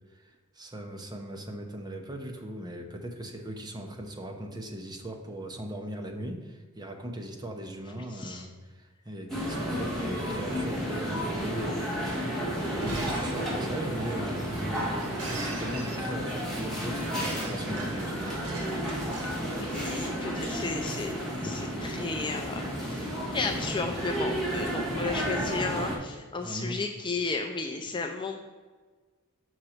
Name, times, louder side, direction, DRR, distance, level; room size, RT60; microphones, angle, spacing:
voice 1, 0.1-18.6 26.4-26.8, right 1 dB, 20° right, 2 dB, 0.8 m, -39 dB
voice 2, 7.9-8.5 19.5-23.1 23.3-28.5, left 3 dB, 20° left, 4 dB, 0.4 m, -34 dB
sound 1, 9.3-26.0, equal, ahead, 1.7 m, -32 dB
Shatter, 12.7-20.7, right 2 dB, 80° right, 1.7 m, -41 dB
6.4 x 5.2 x 4.4 m, 1.4 s
head